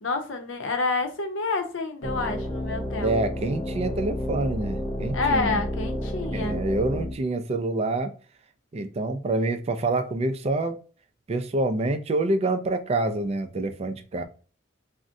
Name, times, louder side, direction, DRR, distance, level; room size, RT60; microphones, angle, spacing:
voice 1, 0.0-3.1 5.1-6.6, left 3 dB, 85° left, 0.7 m, -28 dB
sound 1, 2.0-7.1, equal, 30° left, 0.4 m, -30 dB
voice 2, 3.0-5.6 6.3-8.1 8.7-10.8 11.3-14.2, right 2 dB, 35° right, 0.3 m, -27 dB
3.6 x 2.1 x 2.5 m
head